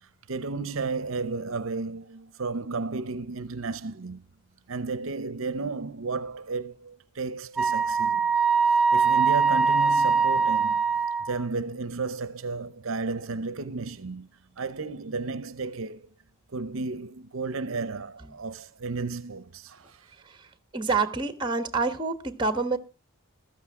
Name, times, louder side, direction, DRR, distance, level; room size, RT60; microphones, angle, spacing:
voice 1, 0.0-4.2 4.7-8.3 8.7-10.8 11.2-14.3 14.6-16.1 16.5-20.0, right 3 dB, 65° right, 0.7 m, -33 dB
Wind instrument woodwind instrument, 7.6-11.4, right 5 dB, ahead, 1.0 m, -22 dB
voice 2, 20.7-22.8, right 4 dB, 20° right, 1.3 m, -27 dB
15.0 x 13.5 x 3.6 m
head